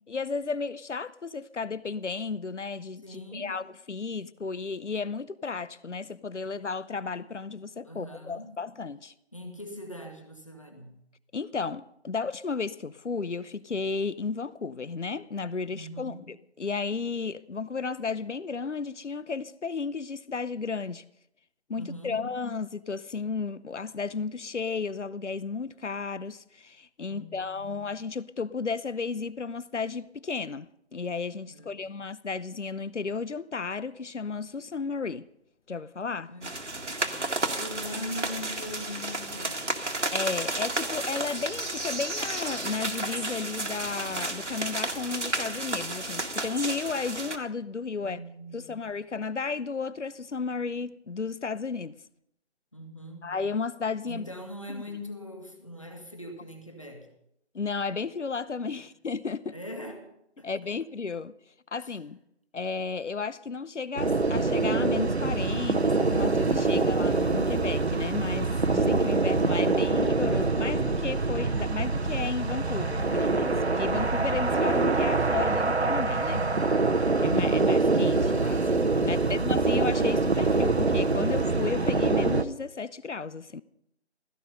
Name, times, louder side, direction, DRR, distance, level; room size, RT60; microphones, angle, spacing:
voice 1, 0.1-9.1 11.3-21.0 21.7-35.3 35.7-36.3 40.1-48.2 48.5-51.9 53.2-54.3 54.7-54.8 57.5-59.6 60.4-61.3 61.7-62.2 62.5-76.4 77.2-83.6, left 4 dB, 80° left, 0.8 m, -33 dB
voice 2, 3.0-3.5 7.8-8.6 9.3-11.0 15.7-16.2 21.7-22.3 27.1-27.8 31.5-31.8 36.3-36.5 37.5-39.8 48.0-48.8 52.7-53.3 54.0-57.1 58.7-58.8 59.5-60.1 60.4-60.5 61.8-61.9 78.9-79.5, left 1 dB, 25° left, 1.7 m, -41 dB
sound 1, 36.4-47.4, right 2 dB, 85° right, 2.0 m, -32 dB
sound 2, 64.0-82.4, right 3 dB, 65° right, 1.0 m, -25 dB
16.0 x 15.5 x 5.4 m
figure-of-eight pair, 180°, 35 cm